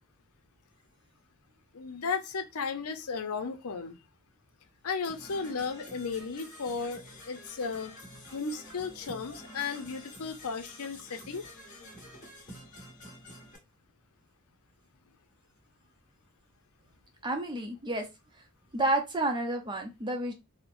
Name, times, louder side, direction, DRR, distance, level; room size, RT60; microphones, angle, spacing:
voice 1, 1.7-4.0 4.8-7.9 8.3-11.4, left 5 dB, 85° left, 0.6 m, -35 dB
Percussion / Brass instrument, 5.0-13.6, left 1 dB, 35° left, 1.5 m, -49 dB
voice 2, 17.2-18.1 18.7-20.3, right 1 dB, 20° right, 0.6 m, -30 dB
4.3 x 2.1 x 2.5 m
head